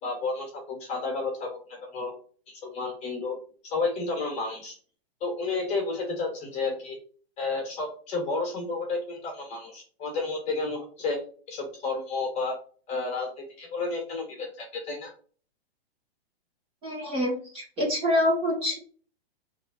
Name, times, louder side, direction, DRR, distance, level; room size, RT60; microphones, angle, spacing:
voice 1, 0.0-2.1 2.5-3.4 3.6-4.8 5.2-7.0 7.4-11.2 11.5-12.6 12.9-15.1, left 3 dB, 20° left, 0 dB, 1.9 m, -31 dB
voice 2, 16.8-18.8, left 1 dB, 15° right, -4 dB, 1.6 m, -26 dB
4.0 x 3.1 x 4.0 m, 0.41 s
hypercardioid pair, 160°, 32 cm